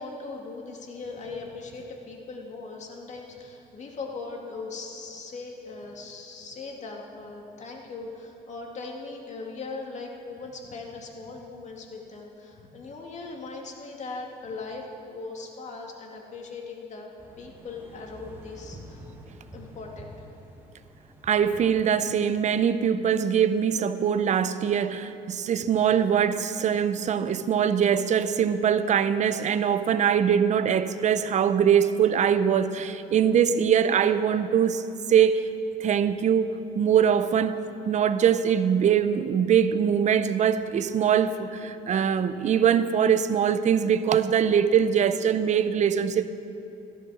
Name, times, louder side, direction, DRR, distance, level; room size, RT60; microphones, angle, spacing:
voice 1, 0.0-17.1 17.4-19.0 19.5-20.1, left 3 dB, 45° left, 0 dB, 2.3 m, -39 dB
sound 1, 17.2-22.6, right 1 dB, 15° right, 1.6 m, -48 dB
voice 2, 21.2-34.8 35.1-35.5 35.8-36.5 36.8-37.6 37.9-46.3, right 8 dB, 45° right, 12 dB, 0.7 m, -22 dB
14.0 x 12.5 x 6.3 m, 2.9 s
cardioid pair, 110°, 17 cm